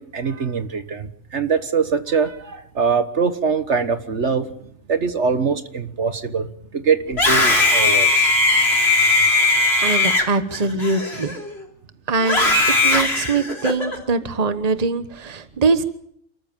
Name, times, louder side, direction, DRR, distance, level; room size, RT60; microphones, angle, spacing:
voice 1, 0.0-8.3, right 5 dB, 65° right, 10 dB, 1.7 m, -23 dB
Screaming, 7.1-11.6 12.2-14.0, left 2 dB, 55° left, 4.1 m, -18 dB
voice 2, 9.5-11.4 12.1-12.5 12.8-15.8, right 4 dB, 30° right, 11 dB, 1.3 m, -22 dB
28.5 x 14.0 x 9.1 m, 0.70 s
omnidirectional pair, 1.3 m